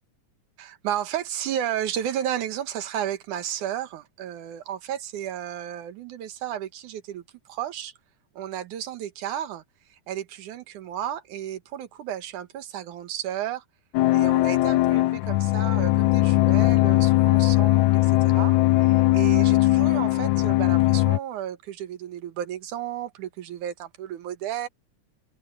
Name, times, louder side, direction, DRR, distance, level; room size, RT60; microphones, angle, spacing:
voice 1, 0.6-7.2 7.5-7.9 8.4-9.6 10.1-13.6 14.1-24.7, right 10 dB, 85° right, 2.8 m, -33 dB
sound 1, 13.9-21.2, left 18 dB, 80° left, 1.9 m, -20 dB
omnidirectional pair, 3.4 m